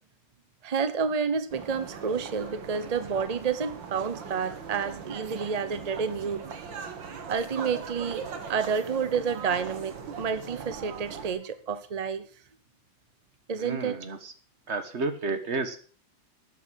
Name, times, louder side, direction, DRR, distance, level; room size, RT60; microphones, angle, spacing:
voice 1, 0.6-6.4 7.3-8.2 8.5-12.3 13.5-14.0, right 6 dB, 55° right, 13 dB, 0.4 m, -29 dB
sound 1, 1.5-11.3, right 6 dB, 80° right, 2.3 m, -40 dB
voice 2, 13.6-14.3 14.7-15.8, right 3 dB, 40° right, 9 dB, 1.5 m, -31 dB
12.5 x 8.9 x 6.3 m, 0.42 s
omnidirectional pair, 2.0 m